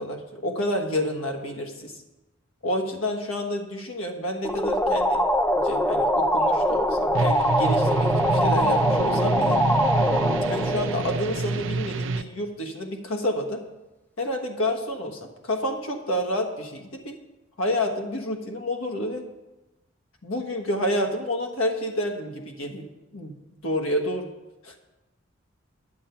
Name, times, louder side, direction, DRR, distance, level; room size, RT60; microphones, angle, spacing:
voice 1, 0.0-1.9 2.6-5.2 5.6-9.6 10.5-13.6 14.2-17.2 17.6-19.3 20.2-22.8 23.1-23.4 23.6-24.3 24.6-24.7, left 1 dB, 90° left, 3 dB, 1.4 m, -29 dB
sound 1, 4.4-11.8, equal, 10° left, 0.4 m, -23 dB
sound 2, 7.1-12.2, right 3 dB, 65° right, 0.5 m, -27 dB
11.0 x 8.0 x 5.7 m, 1.0 s
head